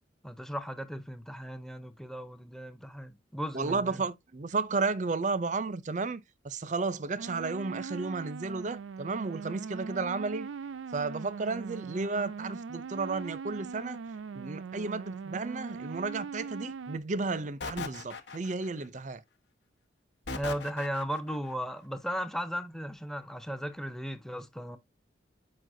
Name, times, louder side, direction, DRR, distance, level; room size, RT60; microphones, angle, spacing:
voice 1, 0.2-4.0 20.3-24.8, equal, ahead, 0.6 m, -36 dB
voice 2, 3.5-10.5 10.9-14.0 14.3-19.2, right 3 dB, 40° right, 0.5 m, -33 dB
sound 1, 7.2-17.0, right 5 dB, 90° right, 0.5 m, -41 dB
sound 2, 17.6-18.9 20.3-21.4, left 4 dB, 65° left, 1.0 m, -39 dB
7.5 x 5.4 x 2.6 m
head